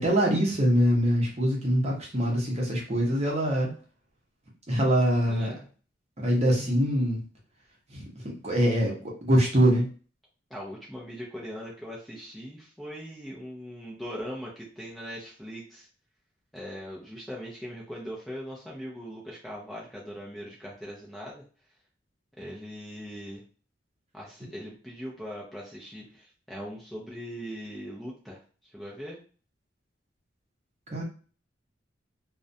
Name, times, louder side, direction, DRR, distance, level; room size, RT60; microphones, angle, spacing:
voice 1, 0.0-3.7 4.7-5.5 6.2-7.2 7.9-9.9 30.9-31.0, equal, 35° right, -2 dB, 0.7 m, -24 dB
voice 2, 5.3-5.7 10.5-15.9 16.5-21.4 22.4-23.4 24.1-29.2, equal, ahead, -5 dB, 0.4 m, -40 dB
2.4 x 2.1 x 2.6 m, 0.38 s
head